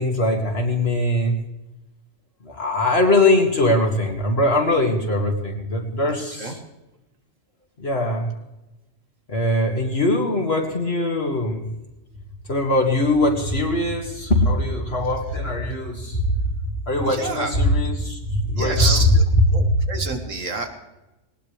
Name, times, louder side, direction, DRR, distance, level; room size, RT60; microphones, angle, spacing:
voice 1, 0.0-1.4 2.4-6.6 7.8-8.3 9.3-11.6 12.5-16.3 16.9-19.1 19.4-19.8, left 1 dB, 55° left, 1 dB, 2.3 m, -21 dB
voice 2, 17.1-17.5 18.5-19.2 19.5-20.7, right 3 dB, 80° right, 5 dB, 2.1 m, -27 dB
19.5 x 19.0 x 3.3 m, 1.0 s
omnidirectional pair, 1.3 m